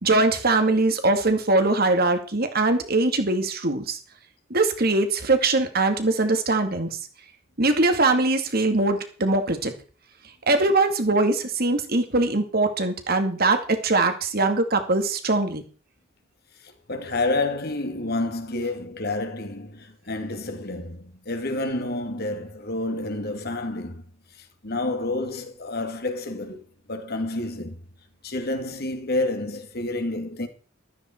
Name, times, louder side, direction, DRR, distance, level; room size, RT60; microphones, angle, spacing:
voice 1, 0.0-4.0 4.5-7.0 7.6-9.7 10.5-15.6, right 2 dB, 50° right, 2.3 m, -22 dB
voice 2, 16.6-24.0 24.4-27.8 28.2-30.5, left 2 dB, 55° left, 2.5 m, -29 dB
14.5 x 13.5 x 4.6 m
head